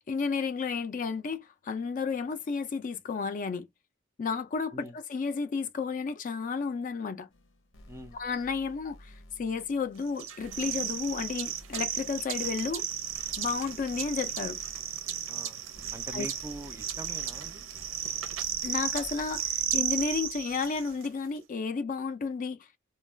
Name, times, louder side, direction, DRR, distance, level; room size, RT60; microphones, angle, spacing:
voice 1, 0.1-3.7 4.2-7.3 8.1-12.8 13.4-14.6 16.1-16.3 18.6-22.8, left 5 dB, 45° left, 0.4 m, -32 dB
sound 1, 7.3-21.0, equal, 75° left, 0.8 m, -53 dB
voice 2, 7.9-8.2 15.3-15.6 15.9-17.6, right 1 dB, 15° right, 0.5 m, -43 dB
sound 2, 10.2-21.1, right 10 dB, 90° right, 0.6 m, -34 dB
2.3 x 2.2 x 3.1 m
head